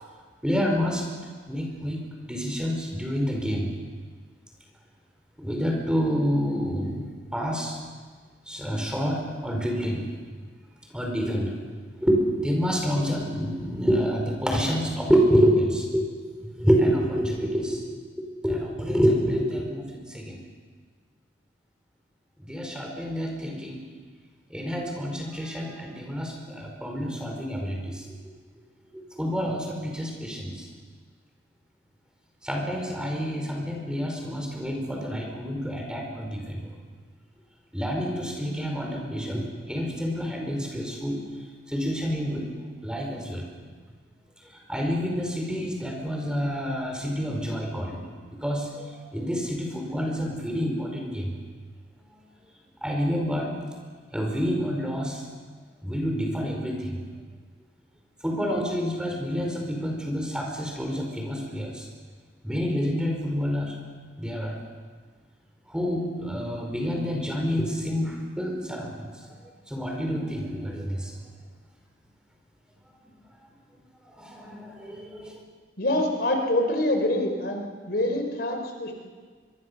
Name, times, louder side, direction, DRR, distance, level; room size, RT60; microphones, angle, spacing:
voice 1, 0.4-1.1 1.5-3.7 5.4-7.8 8.5-10.1 10.9-11.7 12.0-16.1 16.6-17.8 18.4-20.4 22.4-23.8 24.5-28.1 29.2-30.7 32.4-36.7 37.7-41.2 41.7-42.5 42.8-43.5 44.5-48.1 48.4-51.3 52.8-53.5 54.1-55.2 55.8-57.0 58.2-61.8 62.4-63.7 64.2-64.6 65.7-69.4 69.7-71.2 74.0-75.4, equal, 5° right, 0 dB, 4.9 m, -28 dB
voice 2, 75.8-78.9, left 1 dB, 60° left, 4 dB, 3.7 m, -25 dB
25.0 x 23.5 x 7.0 m, 1.5 s
head